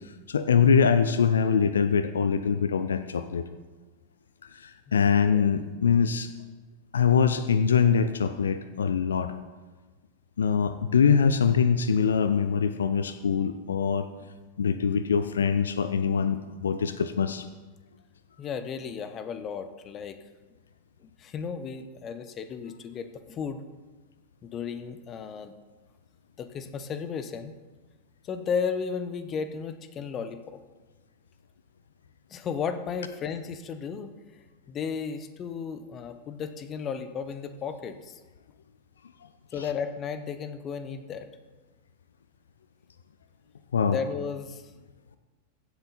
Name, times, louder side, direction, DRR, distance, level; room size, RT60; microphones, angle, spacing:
voice 1, 0.3-3.4 4.6-6.3 6.9-9.3 10.4-14.1 14.6-17.4 39.6-39.7 43.7-44.0, left 6 dB, 70° left, 11 dB, 0.5 m, -23 dB
voice 2, 18.4-20.2 21.2-23.6 24.4-25.5 26.4-27.5 28.2-30.6 32.3-34.1 34.7-38.2 39.5-41.3 43.9-44.6, left 6 dB, 30° left, 10 dB, 0.9 m, -34 dB
16.0 x 7.7 x 4.2 m, 1.2 s
figure-of-eight pair, 90°, 0 cm